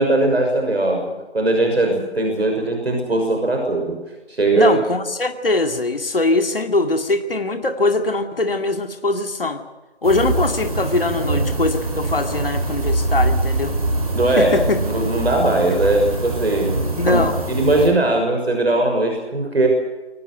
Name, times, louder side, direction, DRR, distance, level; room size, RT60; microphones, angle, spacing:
voice 1, 0.0-4.0 4.3-4.8 14.1-16.8 17.1-17.2 17.5-19.7, right 2 dB, 65° right, 2 dB, 6.3 m, -19 dB
voice 2, 4.5-9.6 10.0-13.8 14.3-14.8 17.0-17.3, left 2 dB, 55° left, 5 dB, 2.3 m, -21 dB
sound 1, 10.0-17.9, right 2 dB, 35° right, 6.1 m, -23 dB
24.5 x 18.0 x 7.9 m, 1.2 s
figure-of-eight pair, 170°, 33 cm